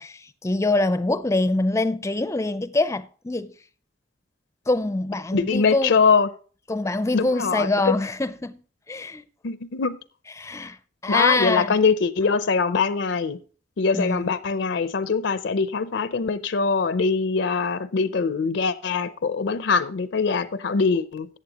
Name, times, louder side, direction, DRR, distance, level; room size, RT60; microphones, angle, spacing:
voice 1, 0.0-3.5 4.7-6.0 6.7-8.6 8.9-9.2 10.4-10.8 11.0-11.8 13.9-14.3, left 2 dB, 15° left, 0.5 m, -24 dB
voice 2, 5.3-6.3 7.1-7.9 9.4-10.0 11.1-13.4 13.8-21.3, left 5 dB, 70° left, 0.5 m, -23 dB
14.0 x 8.4 x 2.9 m
head